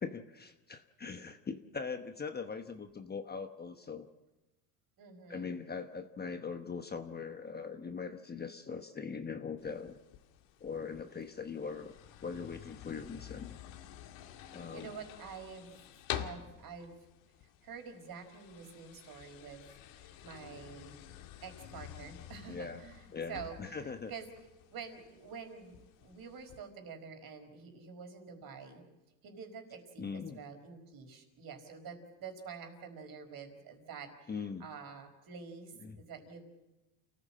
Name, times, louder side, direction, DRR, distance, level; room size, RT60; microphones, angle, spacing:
voice 1, 0.0-4.1 5.3-10.0 10.6-11.9 12.2-13.6 14.5-14.9 22.5-22.8 23.1-24.1 30.0-30.4 34.3-34.7 35.8-36.0, left 5 dB, 20° left, 7 dB, 1.1 m, -41 dB
voice 2, 5.0-5.6 14.4-15.7 16.1-17.0 17.6-21.0 21.4-24.3 24.7-28.8 29.2-36.4, right 6 dB, 45° right, 6 dB, 4.9 m, -48 dB
sound 1, 9.6-26.6, left 11 dB, 65° left, 2.0 m, -49 dB
29.0 x 15.5 x 7.5 m, 1.0 s
supercardioid pair, 115°, 49 cm